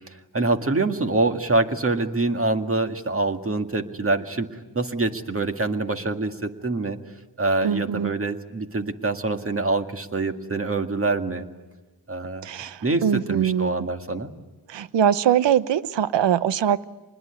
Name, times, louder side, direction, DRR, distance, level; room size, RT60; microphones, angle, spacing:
voice 1, 0.0-4.5 4.7-7.0 7.4-11.5 12.1-12.5 12.8-14.3, right 3 dB, 30° right, 6 dB, 2.0 m, -25 dB
voice 2, 7.6-8.1 12.4-13.9 14.7-16.8, right 9 dB, 75° right, 15 dB, 0.9 m, -22 dB
26.0 x 21.0 x 9.7 m, 1.2 s
cardioid pair, 70°, 43 cm